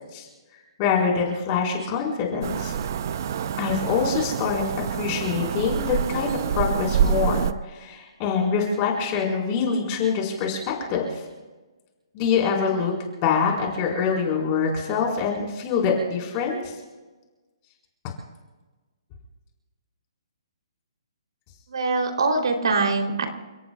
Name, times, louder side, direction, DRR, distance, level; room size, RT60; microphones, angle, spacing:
voice 1, 0.8-2.7 3.6-4.6 4.9-11.1 12.1-12.9 13.2-16.7, left 6 dB, 20° left, -1 dB, 4.6 m, -25 dB
sound 1, 2.4-7.5, right 8 dB, 40° right, 0.6 m, -26 dB
voice 2, 21.7-23.3, right 3 dB, 70° right, 3 dB, 3.3 m, -23 dB
30.0 x 18.0 x 2.4 m, 1.2 s
hypercardioid pair, 170°, 3 cm